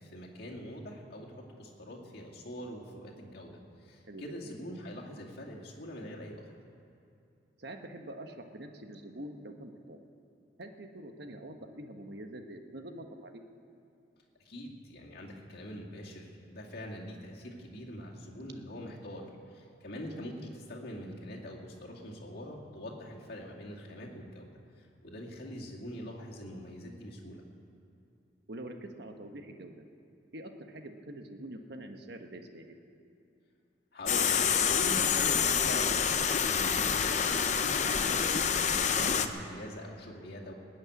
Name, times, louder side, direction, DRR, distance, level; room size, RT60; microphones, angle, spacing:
voice 1, 0.0-6.4 14.4-19.2 19.5-24.5 24.8-27.4 33.9-40.5, equal, 55° left, -2 dB, 2.3 m, -43 dB
voice 2, 7.6-10.0 10.6-13.4 28.5-29.8 30.3-32.8, right 1 dB, 60° right, 5 dB, 1.2 m, -45 dB
sound 1, 34.1-39.3, left 7 dB, 40° left, 0.7 m, -27 dB
19.5 x 6.6 x 9.4 m, 2.6 s
head